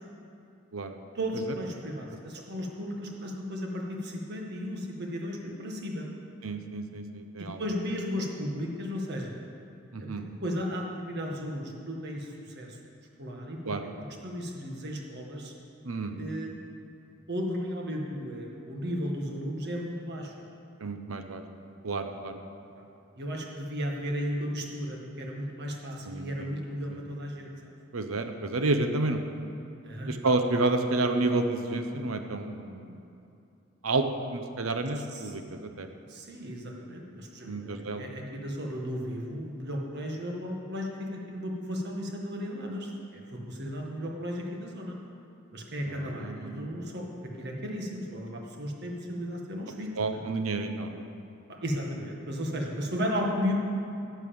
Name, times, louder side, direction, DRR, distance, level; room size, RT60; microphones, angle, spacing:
voice 1, 1.2-6.1 7.4-9.4 10.0-10.1 10.4-12.8 13.2-13.7 14.2-15.5 16.2-16.6 17.3-20.3 23.2-27.7 29.8-30.1 35.1-35.3 36.1-45.0 45.5-47.1 47.4-50.2 51.6-53.5, equal, 55° right, 0 dB, 1.8 m, -35 dB
voice 2, 6.4-7.6 9.9-10.3 13.7-13.8 15.8-16.2 20.8-21.4 21.8-22.4 26.0-26.5 26.9-27.0 27.9-29.2 30.1-33.0 33.8-34.1 34.3-35.9 37.4-38.1 45.9-46.7 50.0-51.1, right 2 dB, 85° right, 7 dB, 0.9 m, -30 dB
11.0 x 8.2 x 7.1 m, 2.6 s
head